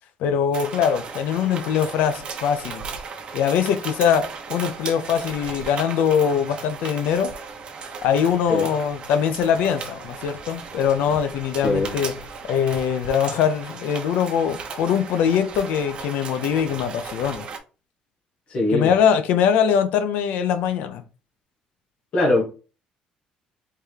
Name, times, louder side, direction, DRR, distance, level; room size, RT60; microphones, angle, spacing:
voice 1, 0.2-2.8 3.3-7.3 8.0-12.2 12.5-17.4 18.7-21.0, left 8 dB, 85° left, 0.5 m, -22 dB
sound 1, 0.5-17.6, right 5 dB, 35° right, 0.9 m, -36 dB
voice 2, 11.6-12.0 18.5-18.9 22.1-22.4, left 2 dB, 45° left, 1.4 m, -21 dB
4.6 x 3.5 x 3.3 m
cardioid pair, 160°, 3 cm